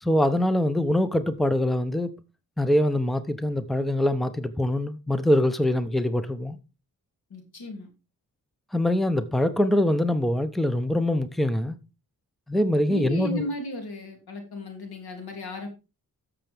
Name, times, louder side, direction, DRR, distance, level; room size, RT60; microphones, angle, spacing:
voice 1, 0.0-2.1 2.6-6.6 8.7-11.8 12.5-13.4, left 1 dB, ahead, 0.8 m, -23 dB
voice 2, 7.3-7.9 12.9-15.7, left 1 dB, 85° left, 3.0 m, -35 dB
13.5 x 6.8 x 3.5 m
wide cardioid pair, 90°, 37 cm